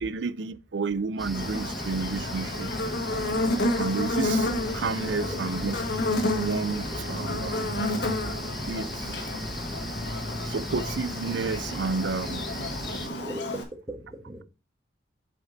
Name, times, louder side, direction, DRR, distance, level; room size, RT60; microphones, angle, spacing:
voice 1, 0.0-2.7 3.8-5.8 6.4-7.7 8.7-9.2 10.4-12.5, right 4 dB, 70° right, 0.5 m, -31 dB
sound 1, 1.2-13.1, equal, ahead, 1.0 m, -36 dB
Buzz, 1.3-13.6, left 2 dB, 65° left, 1.6 m, -31 dB
voice 2, 13.0-14.4, right 1 dB, 20° right, 1.4 m, -39 dB
7.9 x 5.1 x 4.0 m
head